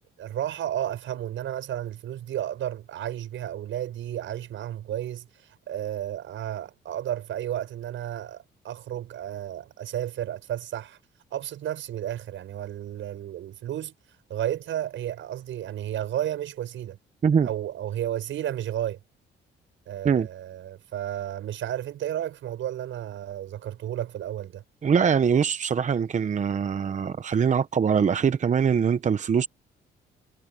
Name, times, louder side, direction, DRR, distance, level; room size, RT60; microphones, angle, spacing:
voice 1, 0.0-11.0 11.3-13.9 14.3-17.0 17.4-19.0 19.9-24.6, right 11 dB, 75° right, 7.2 m, -32 dB
voice 2, 24.8-29.5, right 7 dB, 40° right, 0.8 m, -23 dB
cardioid pair, 90°, 20 cm